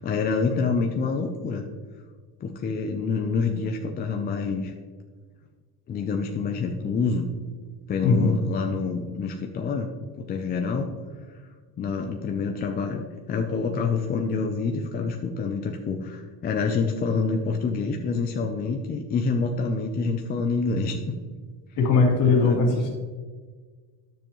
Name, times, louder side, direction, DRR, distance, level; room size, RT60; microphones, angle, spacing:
voice 1, 0.0-1.6 2.4-4.7 5.9-7.3 7.9-9.9 10.2-10.9 11.8-21.2 22.2-22.8, left 4 dB, 20° left, 3 dB, 0.4 m, -27 dB
voice 2, 8.0-8.4 21.8-22.9, left 4 dB, 45° left, -1 dB, 2.3 m, -20 dB
9.9 x 6.9 x 3.0 m, 1.5 s
cardioid pair, 135°, 46 cm